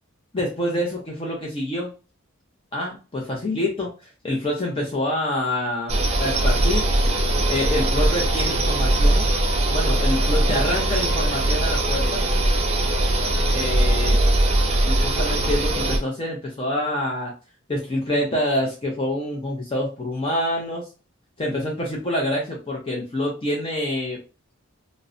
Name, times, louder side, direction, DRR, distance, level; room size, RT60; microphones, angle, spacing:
voice 1, 0.3-1.9 2.7-3.9 4.2-6.9 7.5-9.3 9.7-12.2 13.5-14.2 14.8-17.3 17.7-20.9 21.4-24.2, left 1 dB, 25° left, -2 dB, 0.5 m, -26 dB
sound 1, 5.9-16.0, right 1 dB, 30° right, 0.4 m, -20 dB
2.5 x 2.0 x 2.4 m, 0.33 s
head